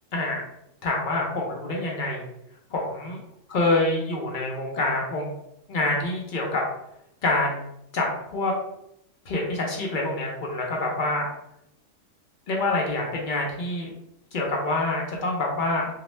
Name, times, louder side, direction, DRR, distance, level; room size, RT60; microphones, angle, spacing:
voice 1, 0.1-0.4 0.8-2.2 2.7-3.2 3.5-5.3 5.7-6.6 7.2-7.6 7.9-8.5 9.3-11.3 12.5-13.9 14.3-15.9, left 2 dB, 60° left, -1 dB, 0.5 m, -26 dB
2.3 x 2.1 x 3.0 m, 0.79 s
omnidirectional pair, 1.3 m